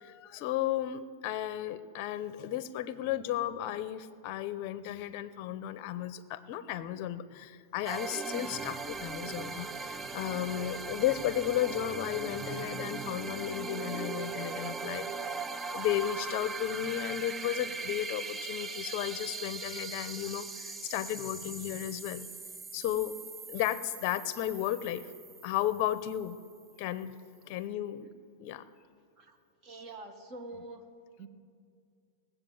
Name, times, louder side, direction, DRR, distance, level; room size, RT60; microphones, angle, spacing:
voice 1, 0.0-15.5 15.7-22.3 22.7-23.2 23.5-25.0 25.4-26.4 26.8-27.1 27.4-28.1 28.4-28.6, left 12 dB, 45° left, 14 dB, 0.7 m, -34 dB
sound 1, 7.9-26.3, right 4 dB, 15° right, 0.4 m, -40 dB
voice 2, 29.6-30.9 31.2-31.3, right 2 dB, 30° right, 6 dB, 1.4 m, -45 dB
18.5 x 7.8 x 7.8 m, 2.2 s
supercardioid pair, 145°, 0 cm